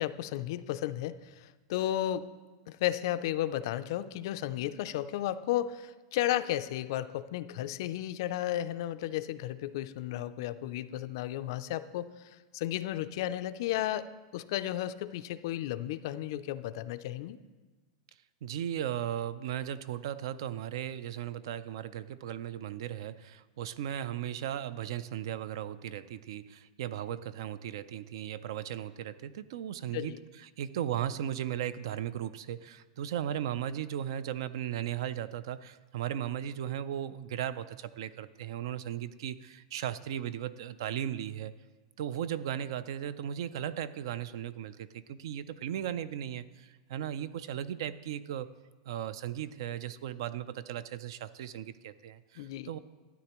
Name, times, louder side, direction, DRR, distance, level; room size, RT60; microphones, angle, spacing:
voice 1, 0.0-2.3 2.7-12.1 12.5-14.1 14.3-17.4 29.9-30.2 52.4-52.7, left 13 dB, 45° left, 13 dB, 0.3 m, -33 dB
voice 2, 18.4-41.5 42.0-48.5 48.9-52.8, right 10 dB, 60° right, 16 dB, 0.4 m, -36 dB
13.0 x 9.2 x 3.0 m, 1.3 s
supercardioid pair, 175°, 3 cm